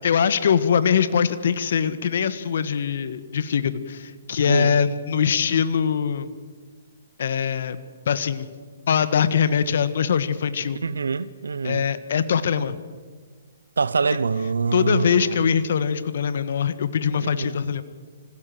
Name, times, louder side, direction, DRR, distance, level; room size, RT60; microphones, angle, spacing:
voice 1, 0.0-6.3 7.2-8.5 8.9-10.8 11.6-12.8 14.7-17.8, left 7 dB, 60° left, 1.4 m, -22 dB
voice 2, 10.8-11.8 13.8-15.5 17.2-17.6, right 4 dB, 80° right, 0.8 m, -25 dB
25.5 x 16.0 x 7.6 m
hypercardioid pair, 130°, 0 cm